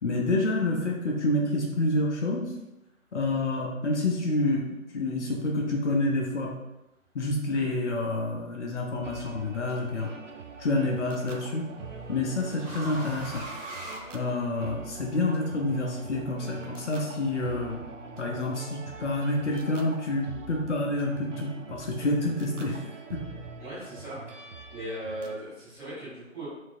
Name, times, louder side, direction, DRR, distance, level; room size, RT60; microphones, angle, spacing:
voice 1, 0.0-2.5 3.1-4.6 4.9-6.5 7.1-10.1 10.6-11.7 12.1-13.4 14.1-17.8 18.2-22.8 23.1-23.2, left 2 dB, 60° left, -1 dB, 0.8 m, -28 dB
sound 1, 8.9-9.4 10.8-14.8, right 2 dB, 25° right, 1.1 m, -42 dB
sound 2, 9.0-25.4, right 4 dB, 65° right, 0.6 m, -43 dB
voice 2, 23.6-24.4 24.7-26.4, right 1 dB, ahead, -18 dB, 0.8 m, -38 dB
4.5 x 2.8 x 2.6 m, 0.96 s
figure-of-eight pair, 145°, 40 cm